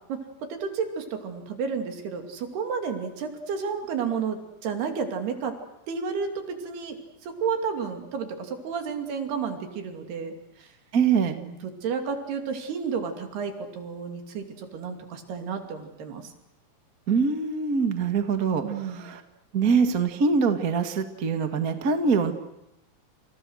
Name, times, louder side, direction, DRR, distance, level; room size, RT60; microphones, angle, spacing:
voice 1, 0.1-5.6 5.9-10.3 10.6-10.7 11.4-16.3 18.6-19.0, right 6 dB, 70° right, 5 dB, 4.7 m, -31 dB
voice 2, 10.9-11.4 17.1-19.2 19.5-22.3, right 5 dB, 40° right, 6 dB, 1.2 m, -24 dB
29.0 x 28.5 x 6.5 m, 0.83 s
omnidirectional pair, 4.8 m